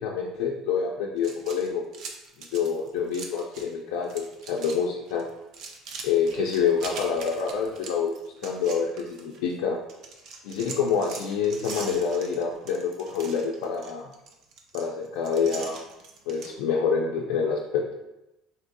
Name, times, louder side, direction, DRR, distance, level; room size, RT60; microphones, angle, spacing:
voice 1, 0.0-1.8 2.4-5.3 6.0-8.1 8.4-9.8 10.4-14.1 14.7-15.8 16.3-17.9, left 6 dB, 90° left, -2 dB, 0.3 m, -27 dB
sound 1, 1.2-3.7 4.0-4.8 5.1-9.5 9.9-16.5, right 4 dB, 60° right, 0.5 m, -42 dB
3.8 x 2.6 x 2.5 m, 0.93 s
cardioid pair, 120°, 0 cm